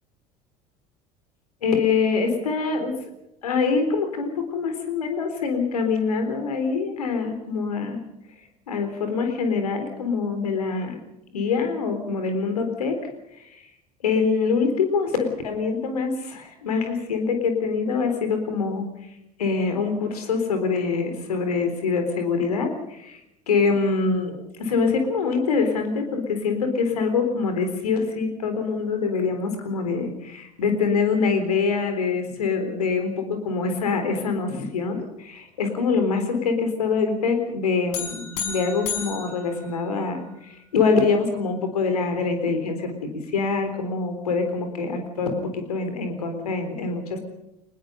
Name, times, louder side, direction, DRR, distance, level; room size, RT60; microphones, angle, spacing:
voice 1, 1.6-3.0 3.4-8.0 8.7-11.0 11.3-13.0 13.4-13.6 14.0-18.9 19.4-23.2 23.5-47.2, left 4 dB, 75° left, 7 dB, 3.9 m, -24 dB
sound 1, 37.9-40.4, left 7 dB, 60° left, 6.0 m, -33 dB
24.5 x 20.5 x 5.3 m, 0.85 s
figure-of-eight pair, 65°, 20 cm